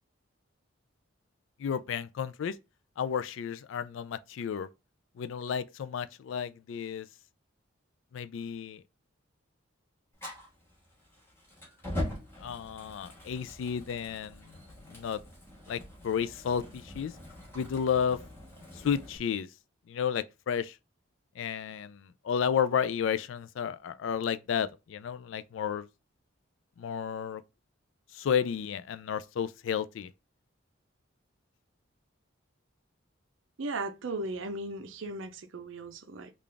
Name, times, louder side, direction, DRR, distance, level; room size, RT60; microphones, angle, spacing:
voice 1, 1.6-2.5 3.0-4.7 5.2-7.1 8.1-8.8 12.4-14.4 14.9-15.2 15.7-17.1 17.5-18.2 18.8-19.5 19.9-20.7 21.4-25.9 26.8-27.4 28.1-30.1, left 7 dB, 70° left, 0.3 m, -32 dB
Fire, 10.2-19.2, left 1 dB, 10° left, 1.6 m, -42 dB
voice 2, 33.6-36.3, right 2 dB, 70° right, 0.5 m, -37 dB
3.8 x 2.4 x 3.3 m
head